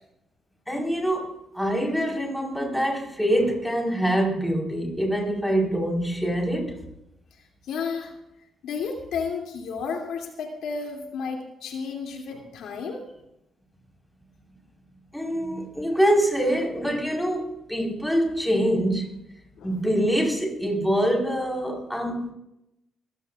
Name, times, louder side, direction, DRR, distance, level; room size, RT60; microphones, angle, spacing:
voice 1, 0.7-6.9 15.1-19.1 19.6-22.3, equal, ahead, 4.5 m, -25 dB
voice 2, 7.7-8.1 8.6-13.1 19.6-19.7, left 5 dB, 80° left, 2.7 m, -32 dB
24.0 x 15.5 x 2.5 m
cardioid pair, 90°, 0 cm